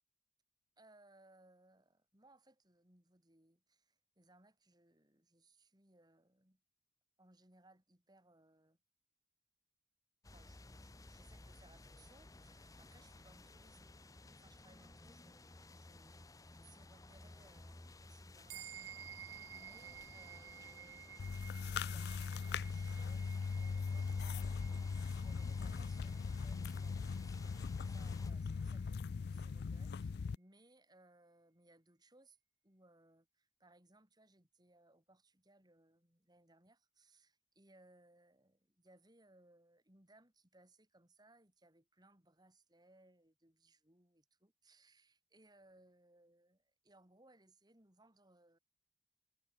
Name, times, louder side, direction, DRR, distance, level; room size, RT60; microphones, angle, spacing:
voice 1, 0.8-6.6 7.2-8.8 10.3-13.9 14.2-21.3 21.6-29.0 29.3-32.4 32.6-48.6, right 2 dB, 20° right, 4.1 m, -67 dB
sound 1, 10.2-28.3, left 2 dB, 20° left, 0.8 m, -57 dB
sound 2, 18.5-28.2, right 9 dB, 75° right, 1.0 m, -55 dB
sound 3, 21.2-30.4, left 5 dB, 55° left, 0.4 m, -40 dB
head